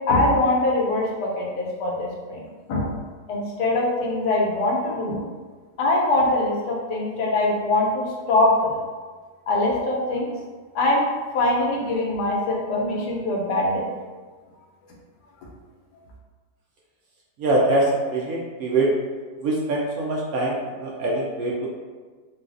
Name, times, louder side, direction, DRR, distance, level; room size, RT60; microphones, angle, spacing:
voice 1, 0.1-2.4 2.7-2.9 3.3-5.2 5.8-8.7 9.5-10.3 10.7-11.0 11.3-13.9, left 2 dB, 75° left, -3 dB, 1.2 m, -22 dB
voice 2, 17.4-18.9 19.4-21.7, right 2 dB, 70° right, -3 dB, 0.9 m, -23 dB
3.9 x 2.3 x 2.5 m, 1.4 s
omnidirectional pair, 1.8 m